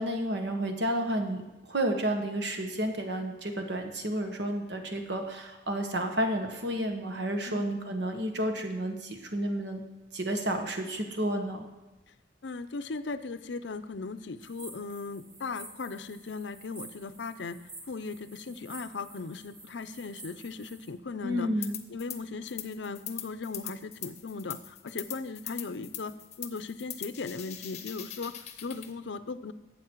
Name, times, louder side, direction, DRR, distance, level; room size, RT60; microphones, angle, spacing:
voice 1, 0.0-1.4 1.7-9.8 10.1-11.6 21.2-21.8, right 1 dB, 65° right, 4 dB, 1.4 m, -31 dB
voice 2, 12.4-17.6 17.9-21.5 21.9-29.5, left 4 dB, 70° left, 13 dB, 0.6 m, -38 dB
sound 1, 14.4-20.9, right 2 dB, 30° right, 2.4 m, -50 dB
sound 2, 21.6-22.2 22.5-28.9, left 11 dB, 35° left, 0.8 m, -41 dB
12.5 x 8.2 x 4.6 m, 1.1 s
head